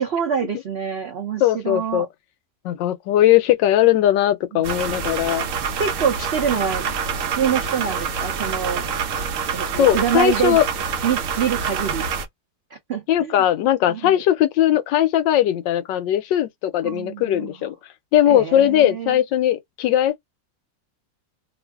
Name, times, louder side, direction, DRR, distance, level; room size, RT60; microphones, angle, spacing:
voice 1, 0.0-2.1 4.9-5.0 5.8-6.9 7.4-8.9 9.5-10.6 11.0-12.0 12.9-13.4 13.9-14.2 16.8-17.7 18.3-19.2, right 7 dB, 80° right, 0.5 m, -25 dB
voice 2, 1.4-2.1 2.6-5.5 9.8-10.6 13.1-17.7 18.1-20.2, left 12 dB, 80° left, 1.3 m, -19 dB
sound 1, 4.6-12.3, right 6 dB, 60° right, 0.9 m, -26 dB
3.0 x 2.5 x 3.4 m
omnidirectional pair, 2.0 m